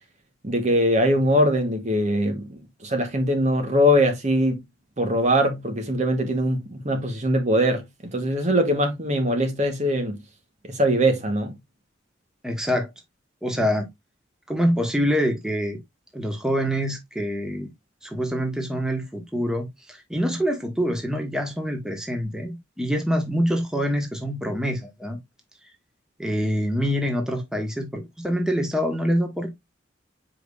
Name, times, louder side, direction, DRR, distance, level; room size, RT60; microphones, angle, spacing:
voice 1, 0.4-2.5 2.8-4.6 5.0-7.8 8.1-10.2 10.7-11.6, equal, 35° right, 1.3 m, -22 dB
voice 2, 12.4-12.9 13.4-13.9 14.5-15.8 16.1-17.7 18.0-25.2 26.2-29.5, equal, 5° right, 1.5 m, -25 dB
7.6 x 5.0 x 2.5 m
head